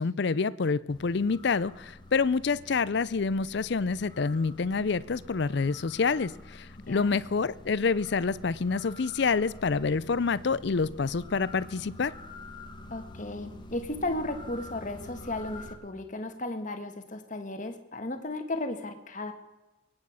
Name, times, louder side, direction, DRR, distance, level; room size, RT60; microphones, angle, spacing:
voice 1, 0.0-12.1, left 4 dB, 55° left, 18 dB, 0.5 m, -27 dB
sound 1, 0.9-15.7, left 1 dB, 20° left, 1.4 m, -47 dB
voice 2, 6.9-7.2 12.9-19.3, left 2 dB, 40° left, 7 dB, 1.5 m, -35 dB
22.5 x 9.8 x 5.7 m, 1.1 s
head